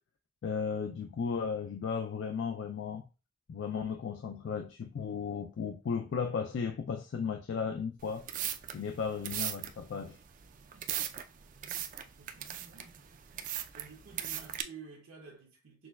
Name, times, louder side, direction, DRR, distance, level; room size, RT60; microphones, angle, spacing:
voice 1, 0.4-3.1 3.5-8.3 8.7-10.2, left 6 dB, 60° left, 0.3 m, -35 dB
sound 1, 8.0-14.6, right 11 dB, 40° right, 0.3 m, -39 dB
voice 2, 12.2-12.9 13.7-15.9, right 5 dB, 85° right, 0.7 m, -51 dB
6.0 x 2.3 x 2.2 m
head